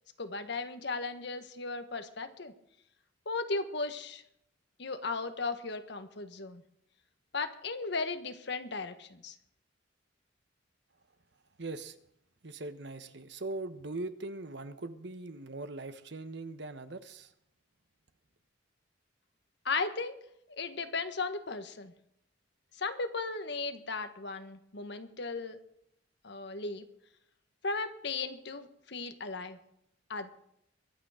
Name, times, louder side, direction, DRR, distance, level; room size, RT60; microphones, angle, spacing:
voice 1, 0.2-2.5 3.2-4.2 4.8-6.6 7.3-9.3 19.6-20.2 20.5-21.9 22.8-25.6 26.2-26.8 27.6-29.6 30.1-30.3, left 3 dB, 65° left, 9 dB, 1.4 m, -36 dB
voice 2, 11.6-12.0 12.4-17.3, right 2 dB, 65° right, 11 dB, 1.1 m, -41 dB
23.0 x 8.9 x 5.0 m, 0.73 s
head